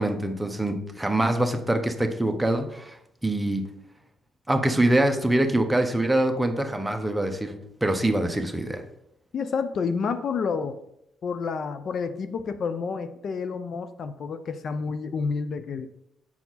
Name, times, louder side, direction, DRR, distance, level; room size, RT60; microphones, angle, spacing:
voice 1, 0.0-3.0 3.2-3.6 4.5-8.8, right 1 dB, 10° right, 5 dB, 0.9 m, -24 dB
voice 2, 9.3-10.8 11.2-15.9, left 5 dB, 55° left, 10 dB, 0.4 m, -29 dB
7.1 x 4.5 x 4.0 m, 0.79 s
cardioid pair, 90°, 0 cm